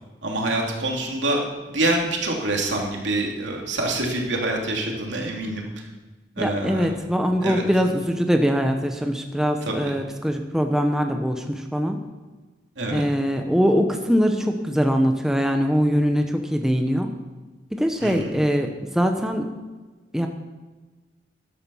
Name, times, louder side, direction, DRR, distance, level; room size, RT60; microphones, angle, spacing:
voice 1, 0.2-1.4 1.7-5.6 6.4-6.9 7.4-7.6 9.6-9.9 12.8-13.0 18.0-18.3, right 2 dB, 80° right, 0 dB, 2.9 m, -26 dB
voice 2, 6.4-12.0 12.9-17.1 17.7-19.5 20.1-20.3, equal, 5° right, 4 dB, 0.9 m, -22 dB
13.5 x 11.5 x 5.6 m, 1.3 s
head